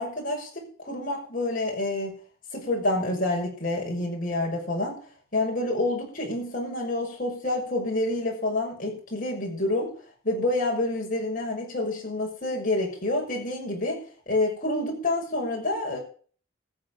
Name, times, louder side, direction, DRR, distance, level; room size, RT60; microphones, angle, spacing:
voice 1, 0.0-2.1 2.5-5.0 5.3-9.9 10.2-14.0 14.3-16.0, left 2 dB, 45° left, -1 dB, 6.2 m, -28 dB
14.0 x 7.8 x 7.3 m, 0.43 s
head